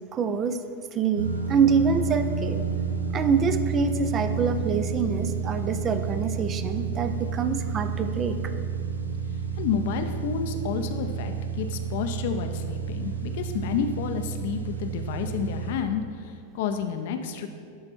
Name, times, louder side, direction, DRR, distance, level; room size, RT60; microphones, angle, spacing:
voice 1, 0.1-0.6 0.9-2.6 3.1-8.4, right 5 dB, 25° right, 9 dB, 0.5 m, -25 dB
sound 1, 1.1-15.7, right 6 dB, 85° right, 0.7 m, -30 dB
voice 2, 9.6-17.5, left 7 dB, 50° left, 7 dB, 0.6 m, -30 dB
11.0 x 4.3 x 4.2 m, 2.3 s
figure-of-eight pair, 90°, 0 cm